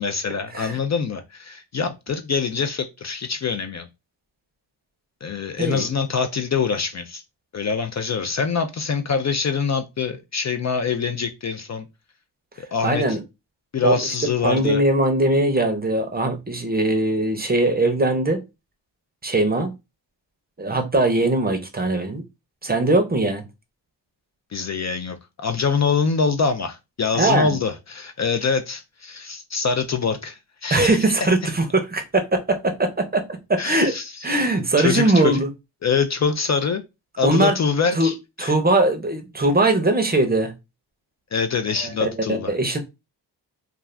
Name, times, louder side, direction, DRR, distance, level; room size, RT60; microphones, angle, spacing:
voice 1, 0.0-3.9 5.2-7.2 7.5-11.9 12.6-13.2 13.7-14.8 24.5-31.1 33.6-34.5 34.8-35.4 35.8-36.8 37.2-38.5 41.3-42.5, left 5 dB, 40° left, 0.4 m, -24 dB
voice 2, 12.8-13.2 13.8-13.9 14.4-18.4 19.2-19.7 20.6-22.2 22.6-23.4 27.1-27.6 30.7-33.2 33.5-33.9 34.2-35.5 37.2-37.6 37.9-38.1 38.4-40.5 41.8-42.8, right 2 dB, 20° right, 0.6 m, -20 dB
2.4 x 2.3 x 3.2 m
cardioid pair, 85°, 43 cm